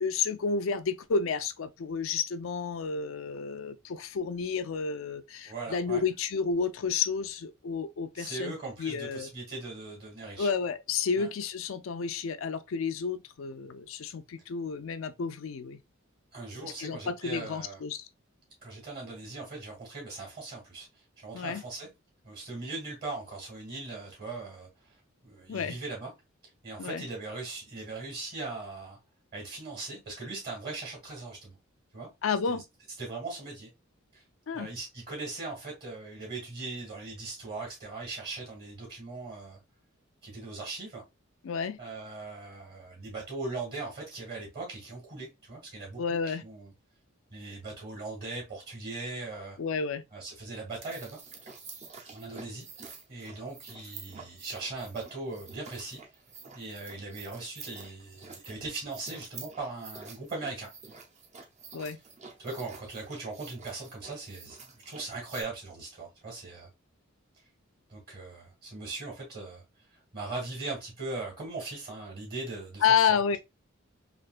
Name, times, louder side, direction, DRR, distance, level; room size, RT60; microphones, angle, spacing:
voice 1, 0.0-8.5 8.8-9.3 10.4-15.8 16.6-18.1 21.3-21.6 25.5-25.8 26.8-27.1 32.2-32.6 34.5-34.7 41.4-41.8 46.0-46.4 49.6-50.0 61.7-62.0 72.8-73.4, left 5 dB, 70° left, 0.4 m, -30 dB
voice 2, 5.4-6.0 8.2-10.5 11.2-11.3 16.3-17.8 18.6-21.9 22.2-26.1 26.6-29.0 29.3-31.6 31.9-32.1 32.5-32.6 33.0-33.7 34.1-34.2 34.5-39.6 40.2-41.0 41.8-46.7 47.3-49.6 50.1-51.2 52.1-52.7 53.1-56.0 56.5-60.7 62.4-66.7 67.9-69.6 69.9-73.2, right 3 dB, 50° right, 1.8 m, -39 dB
sound 1, 50.7-65.4, right 5 dB, 35° right, 0.7 m, -48 dB
3.4 x 2.8 x 2.4 m
head